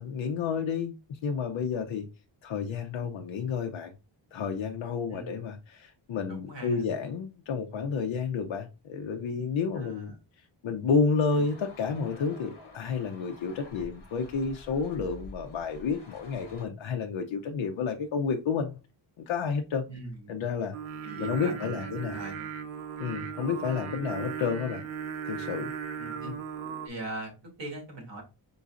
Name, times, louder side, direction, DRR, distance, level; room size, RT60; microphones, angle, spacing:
voice 1, 0.0-2.1 2.4-3.9 4.3-10.1 10.6-18.8 19.2-19.8 20.3-20.8 21.2-22.2 23.0-24.8 25.2-25.7 26.2-26.4, left 5 dB, 75° left, 0.7 m, -30 dB
voice 2, 6.3-6.8 9.7-10.2 11.4-11.5 19.9-20.5 20.9-22.5 23.3-23.5 26.0-26.4 26.8-28.2, right 2 dB, 60° right, 1.7 m, -41 dB
sound 1, 11.3-16.7, left 1 dB, 55° left, 1.5 m, -49 dB
Singing, 20.7-26.9, right 7 dB, 90° right, 0.8 m, -37 dB
5.3 x 3.8 x 2.4 m
wide cardioid pair, 170°, 47 cm